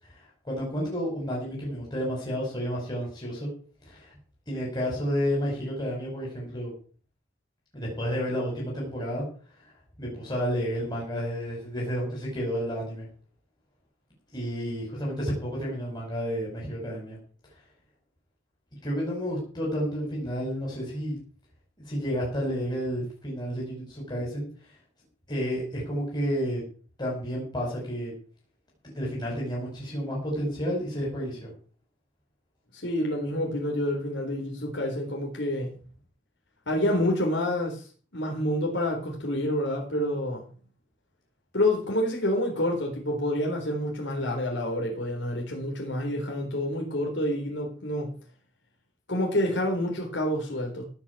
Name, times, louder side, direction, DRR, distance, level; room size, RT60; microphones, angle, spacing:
voice 1, 0.0-3.5 3.8-4.1 4.5-6.7 7.7-9.2 10.0-13.1 14.3-17.2 18.8-21.2 21.9-24.8 25.3-26.6 27.0-28.1 28.9-31.5, equal, 20° left, -3 dB, 5.5 m, -31 dB
voice 2, 32.7-35.8 36.7-40.5 41.5-48.1 49.1-50.8, left 1 dB, 65° left, -1 dB, 3.9 m, -28 dB
17.0 x 6.3 x 8.4 m, 0.42 s
head